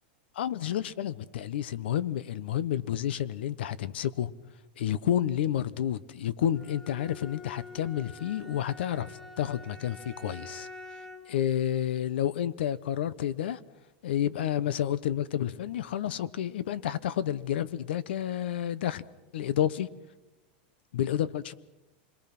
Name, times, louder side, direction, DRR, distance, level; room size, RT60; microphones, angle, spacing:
voice 1, 0.4-4.3 4.8-10.7 11.3-13.6 14.0-19.0 19.3-19.9 20.9-21.5, left 10 dB, 75° left, 1.1 m, -30 dB
Bowed string instrument, 6.5-11.4, left 2 dB, 5° left, 2.7 m, -46 dB
27.0 x 22.5 x 6.1 m
supercardioid pair, 180°, 6 cm